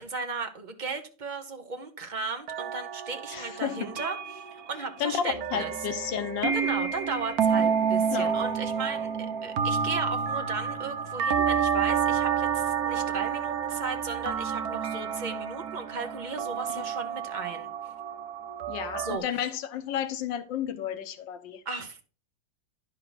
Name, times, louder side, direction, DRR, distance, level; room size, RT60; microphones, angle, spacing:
voice 1, 0.0-5.7 6.5-9.1 9.4-17.7 19.0-19.2 21.6-22.0, right 4 dB, 30° right, 1.0 m, -36 dB
sound 1, 2.5-19.2, right 7 dB, 65° right, 1.2 m, -29 dB
voice 2, 3.3-3.9 5.0-6.6 7.6-7.7 8.1-8.3 16.7-16.8 18.7-21.6, left 9 dB, 85° left, 1.5 m, -32 dB
10.5 x 5.7 x 4.0 m
omnidirectional pair, 1.9 m